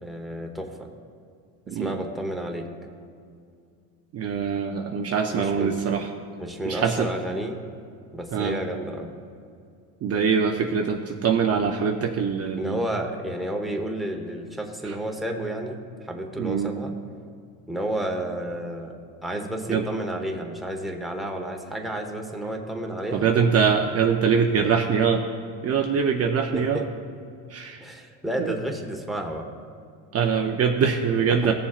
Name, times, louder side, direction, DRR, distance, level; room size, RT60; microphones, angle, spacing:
voice 1, 0.0-0.9 1.7-2.7 5.3-5.8 6.4-7.6 8.1-9.1 12.6-16.9 17.7-19.0 19.2-23.3 26.5-26.8 27.8-29.5 31.3-31.5, right 1 dB, ahead, 1 dB, 0.9 m, -31 dB
voice 2, 4.1-6.0 6.7-7.1 8.3-8.6 10.0-12.8 16.4-16.7 19.7-19.8 23.1-25.2 25.6-26.8 27.5-27.8 28.4-28.6 30.1-31.5, right 6 dB, 30° right, 3 dB, 0.5 m, -23 dB
18.0 x 7.0 x 2.4 m, 2.3 s
cardioid pair, 130°, 48 cm